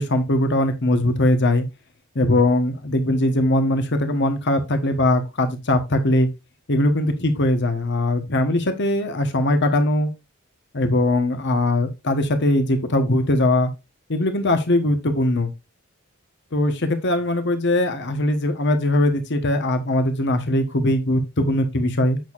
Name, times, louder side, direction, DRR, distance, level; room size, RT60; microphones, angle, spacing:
voice 1, 0.0-1.7 2.1-6.3 6.7-10.1 10.7-13.7 14.1-15.5 16.5-22.2, left 1 dB, 55° left, 1.2 m, -20 dB
7.9 x 6.4 x 2.5 m
head